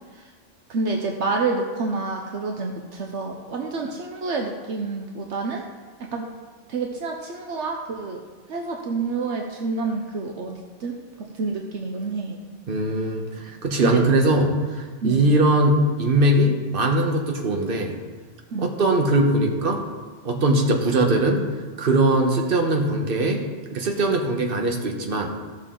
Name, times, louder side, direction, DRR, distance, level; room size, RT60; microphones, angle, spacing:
voice 1, 0.7-5.6 6.1-6.3 6.7-8.2 8.5-12.4 13.8-14.0 15.0-15.3 18.5-18.7, right 3 dB, 70° right, 1 dB, 1.1 m, -28 dB
voice 2, 12.7-18.0 18.6-19.8 20.2-21.4 21.8-23.4 23.7-25.3, right 1 dB, 50° right, 2 dB, 1.3 m, -21 dB
14.0 x 6.4 x 3.8 m, 1.4 s
omnidirectional pair, 1.2 m